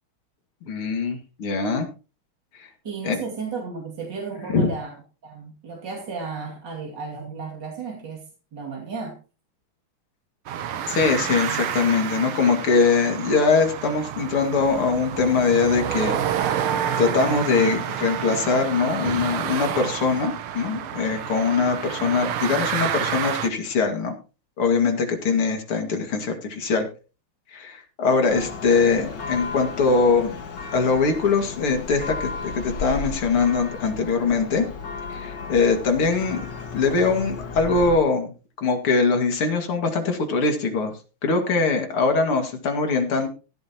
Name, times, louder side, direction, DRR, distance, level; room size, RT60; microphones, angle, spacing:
voice 1, 0.7-1.9 2.6-2.7 3.0-3.2 4.5-4.7 10.9-16.2 16.5-16.6 17.0-24.1 24.6-26.9 27.5-30.4 30.7-34.7 35.1-36.4 36.7-38.3 38.6-40.9 41.2-43.3, left 4 dB, 85° left, 3.0 m, -22 dB
voice 2, 2.8-4.9 5.2-8.2 8.5-9.2, right 4 dB, 55° right, 3.1 m, -34 dB
sound 1, 10.5-23.5, right 9 dB, 90° right, 1.9 m, -29 dB
Church bell, 28.3-38.0, left 4 dB, 55° left, 2.3 m, -34 dB
16.0 x 12.5 x 2.9 m
omnidirectional pair, 2.3 m